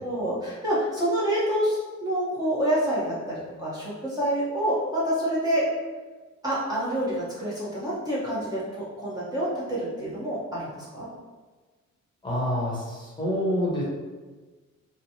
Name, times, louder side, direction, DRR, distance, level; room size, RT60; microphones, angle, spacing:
voice 1, 0.0-5.7 6.4-11.1, right 1 dB, 10° right, -9 dB, 0.9 m, -27 dB
voice 2, 12.2-13.8, equal, 15° left, -7 dB, 1.0 m, -27 dB
3.1 x 2.2 x 2.8 m, 1.3 s
cardioid pair, 90°, 30 cm